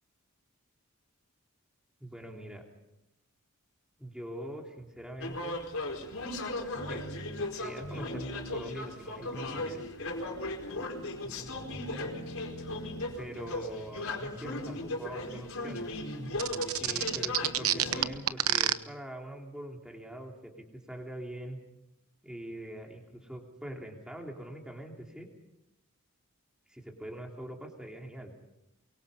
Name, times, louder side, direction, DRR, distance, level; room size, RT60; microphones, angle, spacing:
voice 1, 2.0-2.6 4.0-5.6 6.9-7.0 7.6-9.8 13.2-15.9 16.8-21.6 22.2-25.3 26.7-28.4, right 1 dB, 5° right, 1 dB, 3.2 m, -43 dB
sound 1, 5.2-18.1, left 2 dB, 75° left, 4.5 m, -37 dB
sound 2, 16.4-18.7, right 11 dB, 80° right, 1.0 m, -27 dB
23.5 x 23.0 x 5.6 m, 0.89 s
head